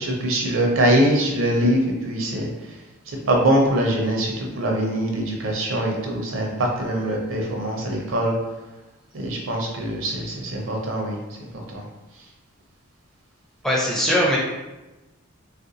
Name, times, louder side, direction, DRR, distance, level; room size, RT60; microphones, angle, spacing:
voice 1, 0.0-2.5 3.1-8.4 9.1-11.8, right 1 dB, 65° right, 0 dB, 0.6 m, -23 dB
voice 2, 13.6-14.4, equal, ahead, -4 dB, 0.5 m, -20 dB
3.4 x 2.5 x 2.7 m, 1.1 s
head